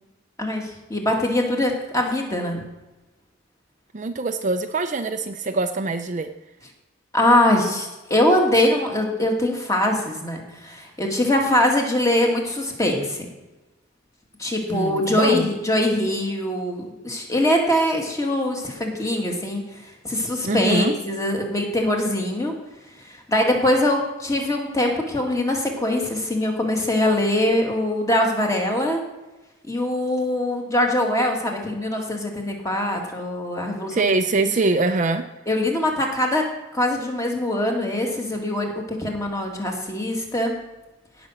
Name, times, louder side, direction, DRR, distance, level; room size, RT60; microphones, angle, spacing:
voice 1, 0.4-2.6 7.1-13.2 14.4-19.6 20.0-22.5 23.1-29.0 29.7-34.1 35.5-36.4 36.7-40.5, left 1 dB, 15° left, 1 dB, 2.0 m, -22 dB
voice 2, 3.9-6.3 14.7-15.5 20.5-21.0 33.9-35.2, right 3 dB, 35° right, 8 dB, 0.5 m, -23 dB
17.0 x 6.1 x 6.4 m, 1.1 s
head